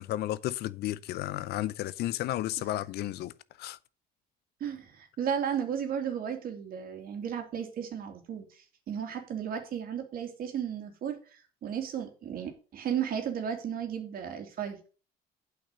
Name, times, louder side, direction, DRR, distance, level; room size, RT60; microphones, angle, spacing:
voice 1, 0.0-3.8, left 14 dB, 75° left, 0.6 m, -33 dB
voice 2, 4.6-14.9, right 8 dB, 60° right, 2.6 m, -34 dB
8.8 x 5.8 x 6.5 m
cardioid pair, 110°, 17 cm